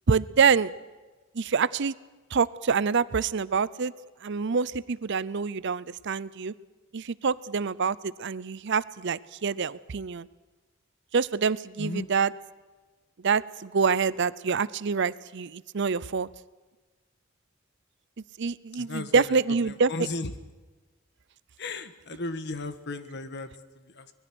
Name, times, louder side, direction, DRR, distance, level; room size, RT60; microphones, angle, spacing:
voice 1, 0.1-0.7 1.3-1.9 2.3-3.9 4.2-6.5 6.9-10.3 11.1-12.3 13.2-16.3 18.4-19.9, right 5 dB, 60° right, 18 dB, 0.6 m, -26 dB
voice 2, 18.7-20.4 21.6-24.1, left 2 dB, 55° left, 10 dB, 1.4 m, -36 dB
24.5 x 20.5 x 6.3 m, 1.3 s
head